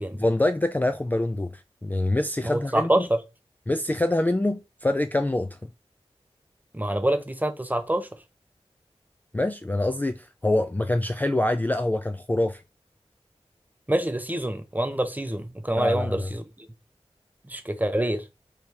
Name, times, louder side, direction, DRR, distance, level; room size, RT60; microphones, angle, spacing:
voice 1, 0.1-3.1 3.7-5.7 9.3-12.6 15.8-16.3, left 1 dB, 15° left, 0.3 m, -25 dB
voice 2, 2.4-3.2 6.7-8.1 13.9-16.7 17.5-18.2, right 1 dB, 15° right, 0.7 m, -26 dB
4.3 x 3.2 x 3.4 m
wide cardioid pair, 65°, 11 cm